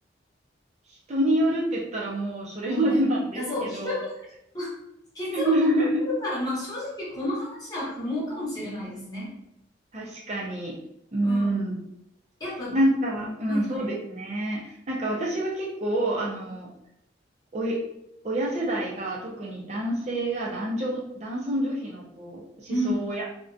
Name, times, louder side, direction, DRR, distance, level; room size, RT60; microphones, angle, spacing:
voice 1, 1.1-4.0 5.3-6.0 9.9-10.8 11.1-11.8 12.7-16.7 17.5-17.8 18.2-23.2, right 1 dB, 35° right, -4 dB, 0.5 m, -27 dB
voice 2, 2.7-3.0 3.4-4.1 4.5-4.7 5.1-5.5 6.2-9.3 11.2-11.5 12.4-12.7 13.2-13.8 22.7-23.1, left 1 dB, 20° left, -6 dB, 0.8 m, -31 dB
2.4 x 2.1 x 2.5 m, 0.80 s
head